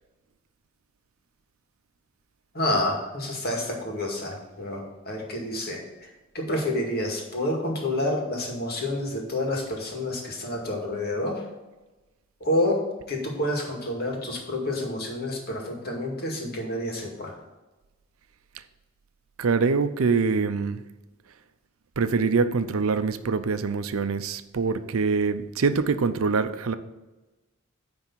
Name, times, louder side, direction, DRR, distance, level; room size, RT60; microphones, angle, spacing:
voice 1, 2.5-6.1 6.3-11.4 12.4-12.8 13.1-17.3, left 1 dB, 50° left, 0 dB, 2.1 m, -28 dB
voice 2, 19.4-20.8 22.0-26.7, right 4 dB, 75° right, 11 dB, 0.6 m, -24 dB
10.0 x 3.5 x 7.1 m, 1.1 s
head